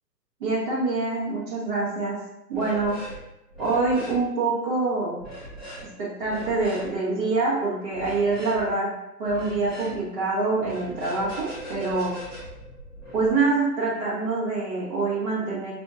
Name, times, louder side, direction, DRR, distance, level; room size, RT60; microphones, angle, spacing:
voice 1, 0.4-2.2 2.5-3.0 3.6-5.2 6.0-12.2 13.1-15.7, right 3 dB, 30° right, -9 dB, 1.4 m, -25 dB
sound 1, 2.5-3.2 3.5-4.2 5.2-5.8 6.2-6.9 7.9-8.6 9.3-10.0 10.6-13.3, equal, ahead, 1.0 m, -40 dB
5.8 x 2.8 x 2.4 m, 0.85 s
figure-of-eight pair, 140°, 49 cm